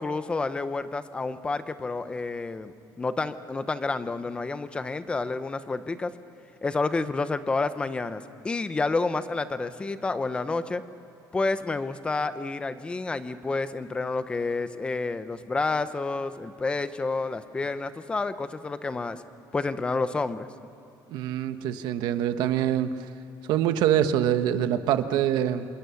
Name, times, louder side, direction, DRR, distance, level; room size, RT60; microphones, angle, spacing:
voice 1, 0.0-6.1 6.6-10.8 11.3-19.2 19.5-20.5, left 3 dB, 15° left, 12 dB, 0.8 m, -29 dB
voice 2, 21.1-23.1 23.5-25.7, right 10 dB, 75° right, 9 dB, 1.2 m, -25 dB
27.5 x 27.0 x 7.1 m, 2.7 s
cardioid pair, 180°, 7 cm